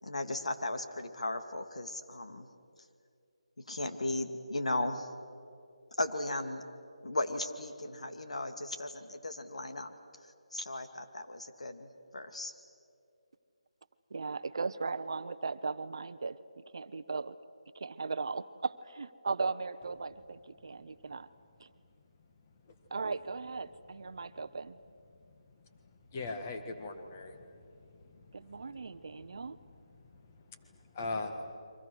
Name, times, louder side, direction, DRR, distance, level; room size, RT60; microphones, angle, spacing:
voice 1, 0.0-2.5 3.7-5.1 6.0-6.6 7.0-9.9 10.5-11.9 12.1-12.5, left 2 dB, 85° left, 6 dB, 2.4 m, -36 dB
voice 2, 14.1-17.4 17.7-21.3 21.6-21.7 22.9-24.8 28.3-29.6, right 4 dB, 50° right, 13 dB, 0.8 m, -37 dB
voice 3, 26.1-27.6 28.4-28.7 29.9-31.6, left 3 dB, 20° left, 6 dB, 1.5 m, -40 dB
30.0 x 24.5 x 6.3 m, 2.4 s
figure-of-eight pair, 175°, 3 cm